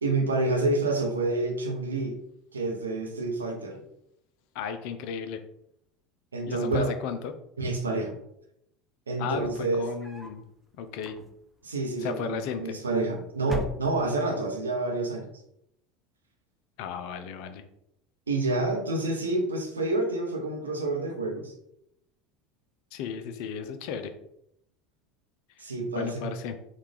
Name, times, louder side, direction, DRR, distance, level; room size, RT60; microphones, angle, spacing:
voice 1, 0.0-2.2 2.5-3.8 6.3-6.9 7.6-8.1 9.1-9.9 11.6-15.3 18.3-21.5 25.6-26.3, right 2 dB, 80° right, 3 dB, 0.6 m, -28 dB
voice 2, 4.5-5.4 6.4-7.3 9.2-10.4 10.8-11.2 12.0-12.8 16.8-17.6 22.9-24.1 25.9-26.6, left 7 dB, 55° left, 8 dB, 0.4 m, -34 dB
sound 1, 9.3-10.4 10.9-11.6 12.6-13.1 13.4-14.3, left 2 dB, 5° right, 0.6 m, -39 dB
4.3 x 2.4 x 3.5 m, 0.77 s
figure-of-eight pair, 75°, 0 cm